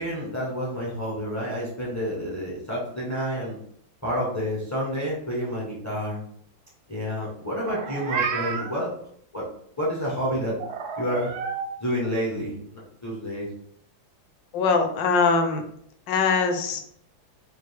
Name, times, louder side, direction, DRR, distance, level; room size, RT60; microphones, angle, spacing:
voice 1, 0.0-3.6 4.0-6.2 6.9-8.9 9.3-9.4 9.8-10.6 11.0-11.3 11.8-13.5, equal, 25° left, -5 dB, 0.3 m, -29 dB
Meow, 7.6-8.8 10.6-11.7, right 5 dB, 75° right, 0.9 m, -30 dB
voice 2, 14.5-15.6 16.1-17.0, left 4 dB, 70° left, 5 dB, 1.2 m, -22 dB
5.0 x 2.4 x 3.3 m, 0.66 s
omnidirectional pair, 2.2 m